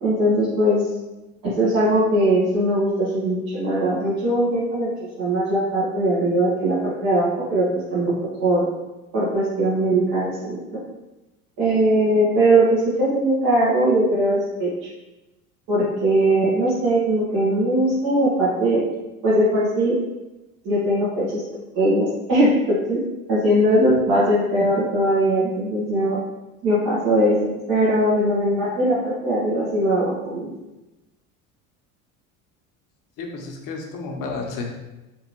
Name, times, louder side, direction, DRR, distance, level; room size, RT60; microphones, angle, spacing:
voice 1, 0.0-0.8 1.4-4.9 5.2-7.6 7.9-8.1 8.4-8.6 9.1-10.8 11.6-14.7 15.7-18.8 19.2-19.9 20.6-21.4 21.7-23.0 23.3-26.2 26.6-30.5, right 1 dB, 55° right, -9 dB, 1.5 m, -20 dB
voice 2, 33.2-34.9, left 3 dB, 45° left, 2 dB, 0.9 m, -32 dB
3.9 x 3.5 x 3.1 m, 1.0 s
hypercardioid pair, 70°, 45 cm